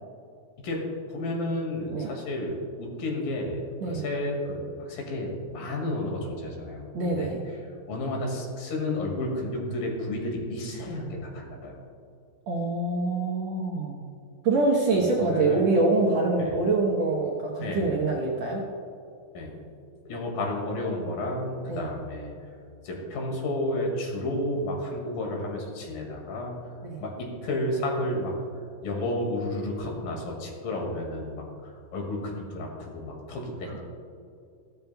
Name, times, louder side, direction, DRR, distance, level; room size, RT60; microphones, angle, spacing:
voice 1, 1.1-7.4 7.9-11.8 15.2-15.6 16.4-16.6 17.6-18.0 19.3-19.5 20.1-22.3 22.8-26.6 27.0-28.3 28.8-33.8, left 1 dB, 75° left, 0 dB, 3.6 m, -31 dB
voice 2, 6.9-7.4 12.5-14.0 14.4-18.6 21.7-21.8 26.8-27.1, right 3 dB, 65° right, -2 dB, 1.8 m, -25 dB
15.5 x 12.5 x 2.3 m, 2.6 s
omnidirectional pair, 4.1 m